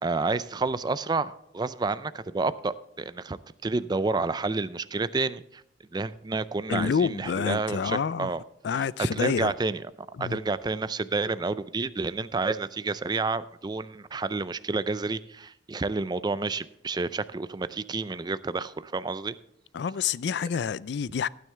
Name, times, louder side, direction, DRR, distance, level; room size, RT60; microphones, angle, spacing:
voice 1, 0.0-5.6 5.9-8.4 8.7-9.8 10.2-19.3, right 3 dB, 20° right, 0.4 m, -30 dB
voice 2, 6.7-8.3 8.6-9.5 10.2-10.4 19.7-21.3, left 6 dB, 60° left, 0.4 m, -28 dB
15.5 x 9.3 x 3.4 m
head